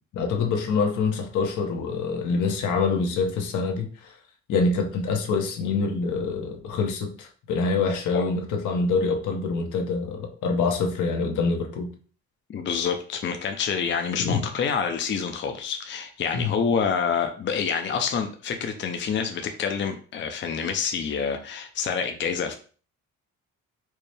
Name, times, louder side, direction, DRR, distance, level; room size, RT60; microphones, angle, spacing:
voice 1, 0.1-4.2 4.5-11.9 14.2-14.4 16.3-16.5, left 4 dB, 75° left, 0.9 m, -25 dB
voice 2, 12.5-22.5, left 6 dB, 40° left, 0.5 m, -27 dB
4.5 x 2.1 x 3.3 m
cardioid pair, 90°, 30 cm